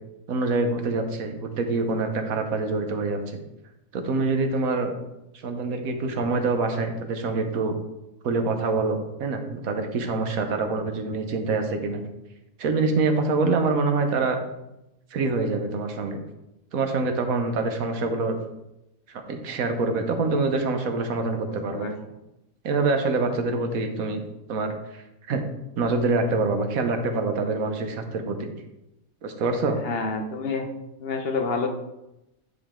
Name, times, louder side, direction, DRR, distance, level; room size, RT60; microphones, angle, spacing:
voice 1, 0.3-3.4 3.9-4.9 5.3-7.8 8.2-12.0 12.6-14.4 15.1-16.2 16.7-18.4 19.1-21.9 22.6-24.2 24.5-25.4 25.8-28.5 29.2-29.8, right 3 dB, 80° right, 5 dB, 1.4 m, -25 dB
voice 2, 21.5-21.9 29.8-30.7 31.0-31.7, left 4 dB, 50° left, 5 dB, 1.1 m, -28 dB
10.5 x 5.1 x 3.7 m, 0.91 s
omnidirectional pair, 1.4 m